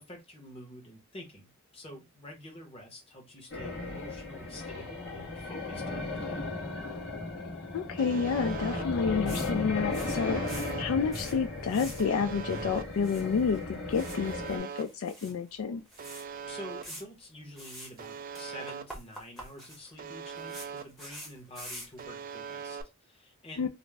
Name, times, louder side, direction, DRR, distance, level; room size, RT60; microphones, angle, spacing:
voice 1, 0.0-6.5 16.4-23.7, left 1 dB, 25° left, 0.9 m, -48 dB
sound 1, 3.5-14.6, left 2 dB, 55° left, 0.9 m, -36 dB
voice 2, 7.7-15.9 23.6-23.7, left 5 dB, 80° left, 0.3 m, -30 dB
Alarm, 8.0-8.8 10.0-10.8 12.0-12.8 14.0-14.8 16.0-16.8 18.0-18.8 20.0-20.8 22.0-22.8, right 7 dB, 45° right, 0.3 m, -41 dB
sound 2, 9.3-9.5 9.8-11.4 11.7-12.1 12.4-13.6 13.9-15.3 15.6-15.7 15.9-16.2 16.8-17.0 17.6-18.1 18.3-22.1, equal, ahead, 0.8 m, -46 dB
2.5 x 2.0 x 3.2 m
head